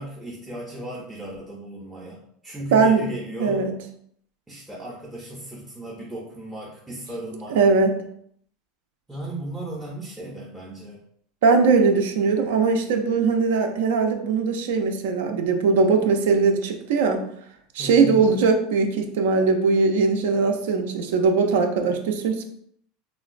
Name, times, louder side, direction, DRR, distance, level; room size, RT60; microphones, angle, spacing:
voice 1, 0.0-3.7 4.5-7.6 9.1-11.0 17.8-18.2, right 1 dB, 5° right, -5 dB, 0.4 m, -36 dB
voice 2, 2.7-3.1 3.4-3.7 7.5-7.9 11.4-17.2 17.8-22.4, right 4 dB, 90° right, 5 dB, 0.4 m, -20 dB
3.7 x 2.1 x 2.4 m, 0.67 s
supercardioid pair, 170°, 0 cm